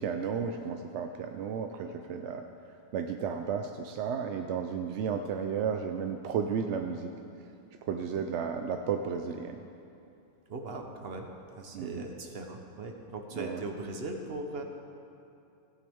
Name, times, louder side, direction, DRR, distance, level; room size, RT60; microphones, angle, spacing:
voice 1, 0.0-2.4 2.9-7.1 7.9-9.6 11.7-12.0 13.3-13.6, right 7 dB, 65° right, 5 dB, 0.7 m, -33 dB
voice 2, 10.5-11.3 11.6-14.6, right 2 dB, 45° right, 4 dB, 1.0 m, -39 dB
16.5 x 9.3 x 3.5 m, 2.7 s
omnidirectional pair, 1.6 m